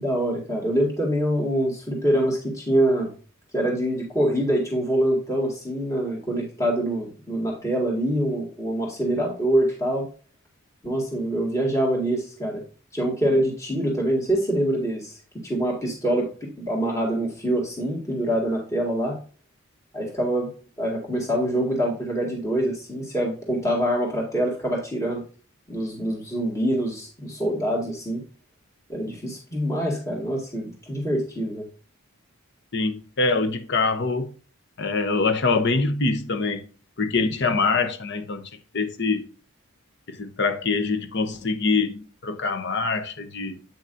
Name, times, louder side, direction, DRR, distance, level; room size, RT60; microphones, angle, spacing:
voice 1, 0.0-3.1 3.5-10.1 10.8-12.6 12.9-15.2 15.4-19.2 19.9-20.5 20.8-25.2 25.7-28.2 28.9-31.7, right 1 dB, 15° left, 2.1 m, -25 dB
voice 2, 32.7-34.3 34.8-36.6 37.0-39.3 40.1-43.6, left 3 dB, 55° left, 0.9 m, -24 dB
8.7 x 5.9 x 2.6 m
head